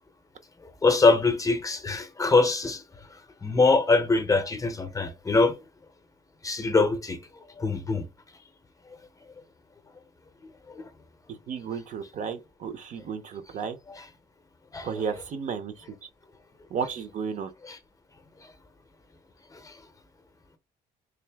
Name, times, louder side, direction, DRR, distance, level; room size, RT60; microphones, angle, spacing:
voice 1, 0.8-2.8 3.4-5.6 6.4-7.2 7.6-8.1 13.9-14.0 14.7-15.0 17.6-17.8 19.6-19.7, left 3 dB, 20° left, 0.6 m, -23 dB
voice 2, 11.5-13.8 14.8-15.7 16.7-17.5, right 6 dB, 50° right, 0.6 m, -33 dB
3.4 x 2.6 x 3.4 m
cardioid pair, 110°, 17 cm